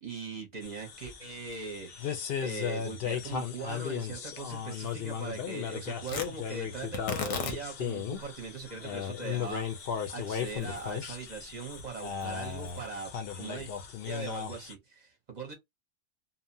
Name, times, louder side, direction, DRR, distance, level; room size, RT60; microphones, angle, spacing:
voice 1, 0.0-13.7 14.0-15.5, right 4 dB, 45° right, 0.7 m, -40 dB
sound 1, 0.6-14.7, left 8 dB, 60° left, 0.7 m, -36 dB
Tearing, 6.0-14.4, left 6 dB, 85° left, 1.1 m, -42 dB
2.7 x 2.1 x 2.6 m
omnidirectional pair, 1.4 m